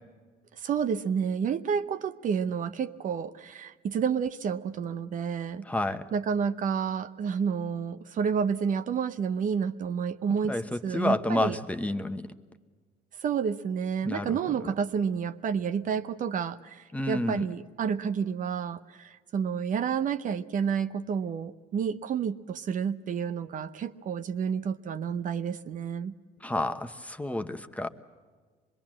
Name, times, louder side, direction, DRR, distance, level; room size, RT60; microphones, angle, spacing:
voice 1, 0.5-5.7 6.1-11.6 13.1-26.1, right 7 dB, 50° right, 10 dB, 0.8 m, -30 dB
voice 2, 5.7-6.0 10.5-12.3 14.0-14.4 16.9-17.5 26.4-27.9, left 1 dB, 10° left, 7 dB, 1.2 m, -30 dB
25.5 x 21.0 x 7.6 m, 1.5 s
cardioid pair, 110°, 17 cm